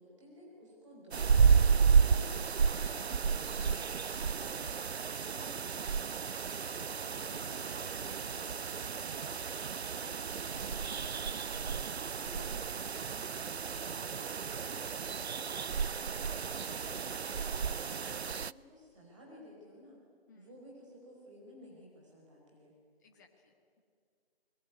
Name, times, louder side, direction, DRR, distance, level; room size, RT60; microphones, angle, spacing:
voice 1, 0.0-9.4 9.7-12.9 13.6-14.0 14.5-14.6 15.0-20.0 20.3-22.7, equal, 30° right, -2 dB, 4.9 m, -55 dB
sound 1, 1.1-18.5, right 6 dB, 85° right, 0.6 m, -32 dB
sound 2, 7.3-8.7 10.5-11.9, right 4 dB, 45° right, 0.6 m, -52 dB
voice 2, 13.1-13.7 14.0-14.5 20.3-20.6 23.0-23.8, left 4 dB, 15° left, 1 dB, 1.6 m, -63 dB
27.5 x 21.5 x 9.5 m, 2.2 s
figure-of-eight pair, 165°, 31 cm